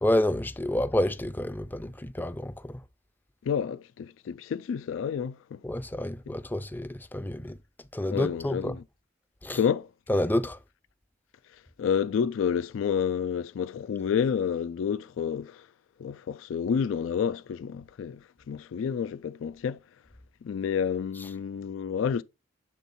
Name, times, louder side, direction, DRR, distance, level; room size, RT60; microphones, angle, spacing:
voice 1, 0.0-2.8 5.6-7.6 7.9-8.7 9.4-9.6 10.1-10.6, left 1 dB, 10° left, 0.4 m, -29 dB
voice 2, 3.4-5.6 8.1-8.8 9.5-9.9 11.8-15.7 16.0-19.8 20.4-22.2, left 7 dB, 85° left, 0.3 m, -29 dB
8.4 x 3.6 x 4.1 m
head